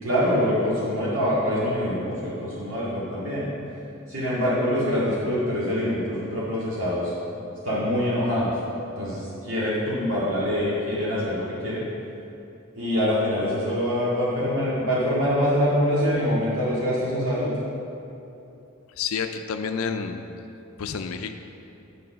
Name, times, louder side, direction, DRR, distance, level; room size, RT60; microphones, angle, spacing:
voice 1, 0.0-3.5 4.1-7.1 7.6-8.6 9.0-11.9 12.7-17.5, equal, 75° right, -9 dB, 2.0 m, -25 dB
voice 2, 19.0-20.3 20.8-21.4, left 6 dB, 80° left, 7 dB, 0.5 m, -29 dB
9.5 x 4.7 x 6.2 m, 2.8 s
head